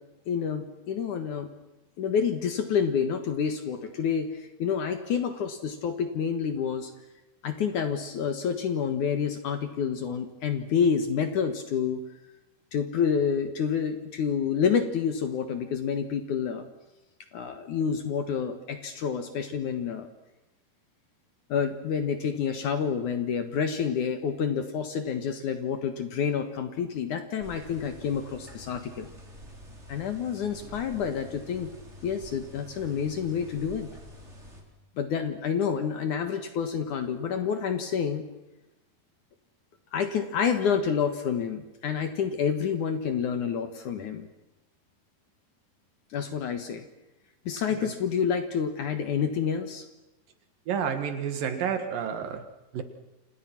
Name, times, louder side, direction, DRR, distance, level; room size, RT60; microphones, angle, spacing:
voice 1, 0.3-1.5 2.0-6.9 7.4-12.0 12.7-16.7 17.3-20.1 21.5-29.1 29.9-31.7 32.0-33.9 35.0-38.3 39.9-44.3 46.1-46.9 47.5-49.9, left 7 dB, 60° left, 8 dB, 2.6 m, -28 dB
sound 1, 27.4-34.6, equal, 15° right, 4.0 m, -47 dB
voice 2, 50.7-52.5 52.7-52.8, right 7 dB, 65° right, 8 dB, 3.1 m, -30 dB
29.0 x 27.5 x 6.0 m, 0.99 s
omnidirectional pair, 4.7 m